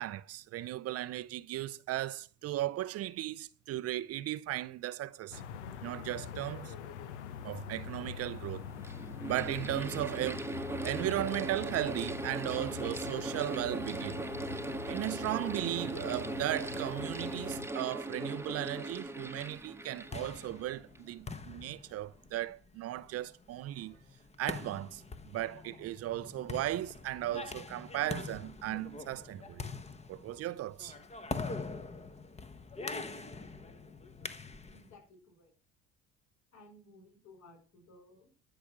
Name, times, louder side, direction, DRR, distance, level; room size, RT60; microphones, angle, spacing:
voice 1, 0.0-5.4 5.8-6.7 7.4-8.7 9.3-10.5 10.8-14.2 14.9-23.9 24.4-25.0 25.3-29.6 30.1-31.0, right 14 dB, 45° right, 0.5 m, -36 dB
sound 1, 5.3-17.7, left 7 dB, 85° left, 0.8 m, -44 dB
Mechanical fan, 7.5-7.6 8.5-21.1, right 2 dB, 10° right, 1.0 m, -39 dB
sound 2, 19.8-34.9, left 4 dB, 20° left, 1.1 m, -44 dB
voice 2, 34.7-35.5 36.5-38.3, left 2 dB, 55° left, 5.0 m, -57 dB
13.0 x 5.1 x 6.1 m
hypercardioid pair, 65°, 33 cm